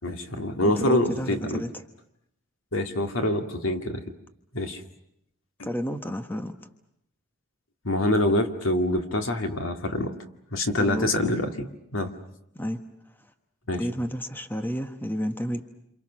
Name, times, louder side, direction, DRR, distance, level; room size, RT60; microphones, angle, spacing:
voice 1, 0.0-1.6 2.7-4.0 4.5-4.8 5.6-5.7 7.8-10.1 10.5-11.7 11.9-12.1 13.7-13.8, left 1 dB, 80° left, 5 dB, 2.2 m, -25 dB
voice 2, 0.6-1.7 5.6-6.6 10.8-11.3 12.5-12.8 13.7-15.6, equal, 10° left, 7 dB, 1.2 m, -31 dB
28.0 x 28.0 x 6.4 m, 0.79 s
head